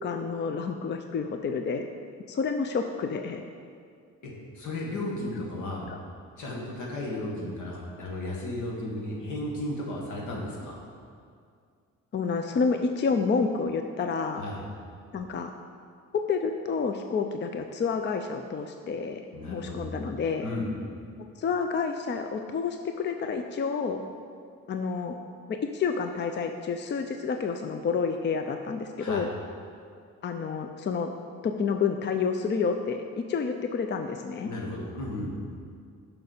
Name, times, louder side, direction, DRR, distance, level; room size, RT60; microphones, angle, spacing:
voice 1, 0.0-1.9 2.3-3.4 5.9-6.0 12.1-14.4 15.1-15.5 16.1-19.2 19.5-20.5 21.4-24.1 24.7-25.2 25.5-29.3 30.2-31.1 31.4-34.5, left 5 dB, 35° left, 6 dB, 0.5 m, -29 dB
voice 2, 4.2-5.9 6.4-10.8 14.4-14.6 19.3-19.9 20.4-20.7 29.0-29.2 34.4-35.3, left 1 dB, 75° left, -2 dB, 1.9 m, -34 dB
6.6 x 5.7 x 6.6 m, 2.2 s
cardioid pair, 90°, 30 cm